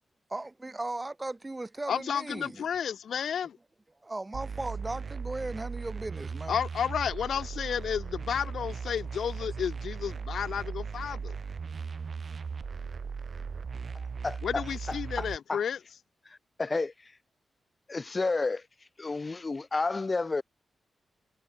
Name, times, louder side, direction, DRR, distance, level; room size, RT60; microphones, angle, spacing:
voice 1, 0.3-2.6 4.0-6.6 7.9-8.0 8.9-9.0 9.4-9.5, right 2 dB, 15° right, 1.5 m, -37 dB
voice 2, 1.9-3.6 6.5-11.3 14.4-15.8, left 8 dB, 70° left, 1.4 m, -32 dB
sound 1, 4.3-15.4, right 5 dB, 40° right, 0.6 m, -38 dB
voice 3, 14.2-14.6 15.2-15.6 16.6-16.9 17.9-18.6 19.0-20.4, left 3 dB, 25° left, 1.5 m, -30 dB
wide cardioid pair, 175°, 0 cm